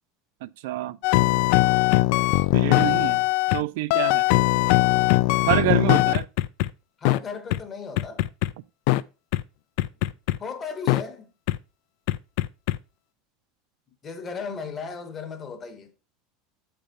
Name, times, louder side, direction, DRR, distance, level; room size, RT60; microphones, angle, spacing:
voice 1, 0.4-1.0 2.5-3.2 3.5-4.2 5.5-6.3, right 15 dB, 65° right, 0.3 m, -27 dB
sound 1, 1.0-3.6 3.9-6.7 7.0-7.2 7.5-7.6 8.0-8.5 8.9-9.0 9.3-9.4 9.8-10.4 10.9-11.0 11.5-11.6 12.1-12.8, left 19 dB, 50° left, 0.3 m, -20 dB
voice 2, 7.0-8.2 10.4-11.3 14.0-15.9, left 5 dB, 20° left, 0.9 m, -36 dB
7.6 x 4.4 x 5.1 m
supercardioid pair, 180°, 0 cm